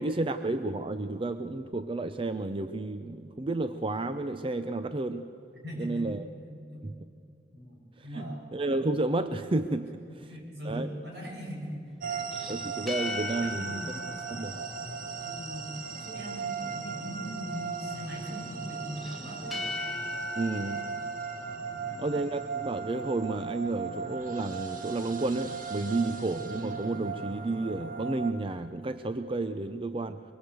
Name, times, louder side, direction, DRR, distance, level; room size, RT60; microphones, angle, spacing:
voice 1, 0.0-5.3 5.8-6.3 6.8-7.0 8.0-10.3 10.6-10.9 12.5-14.0 14.3-14.6 20.4-20.9 22.0-30.2, right 2 dB, 30° right, 9 dB, 0.6 m, -31 dB
voice 2, 5.5-6.1 6.5-6.9 7.5-8.5 9.9-12.3 13.4-14.2 14.5-14.9 15.2-19.6 21.6-22.1 25.8-25.9, equal, 70° right, -1 dB, 7.1 m, -41 dB
sound 1, 12.0-28.3, right 5 dB, 50° right, 1.8 m, -38 dB
sound 2, 12.2-15.7 19.0-22.5, left 2 dB, ahead, 1.8 m, -39 dB
23.5 x 23.5 x 7.8 m, 2.6 s
head